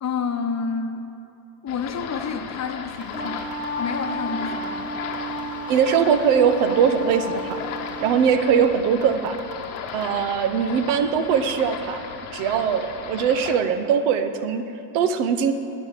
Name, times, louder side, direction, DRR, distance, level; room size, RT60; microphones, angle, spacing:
voice 1, 0.0-1.0 1.6-3.5 3.8-5.0, left 5 dB, 35° left, 6 dB, 0.8 m, -29 dB
sound 1, 1.7-13.6, left 6 dB, 85° left, 1.1 m, -36 dB
sound 2, 2.6-2.7 3.0-4.2 4.6-4.8 5.0-6.2 6.6-6.7 7.0-8.2 8.6-8.7 9.0-10.0, right 8 dB, 45° right, 1.0 m, -42 dB
Wind instrument woodwind instrument, 2.9-8.4, equal, 15° right, 1.3 m, -33 dB
voice 2, 5.7-7.6 8.0-9.4 9.9-14.6 14.9-15.5, right 7 dB, 75° right, 9 dB, 0.8 m, -21 dB
10.0 x 5.2 x 7.3 m, 2.6 s
supercardioid pair, 80°, 49 cm